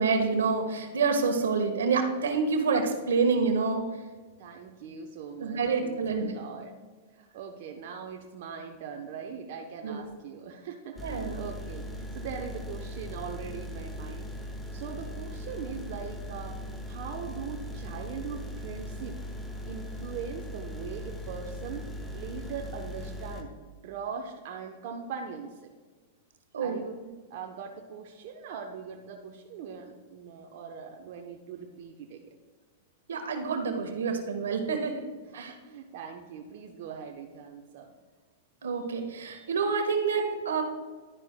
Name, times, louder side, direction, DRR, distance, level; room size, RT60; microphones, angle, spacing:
voice 1, 0.0-3.8 5.4-6.3 9.8-10.1 11.0-11.4 26.5-26.8 33.1-35.0 35.3-35.5 38.6-40.6, right 4 dB, 85° right, 5 dB, 1.3 m, -27 dB
voice 2, 4.4-6.7 7.1-14.3 14.7-16.6 16.9-19.2 19.7-23.5 23.8-25.7 26.6-27.0 27.3-32.2 35.3-37.9, right 6 dB, 60° right, 2 dB, 0.8 m, -41 dB
sound 1, 11.0-23.4, equal, 5° left, 1.2 m, -39 dB
11.5 x 10.0 x 2.2 m, 1.4 s
hypercardioid pair, 110°, 0 cm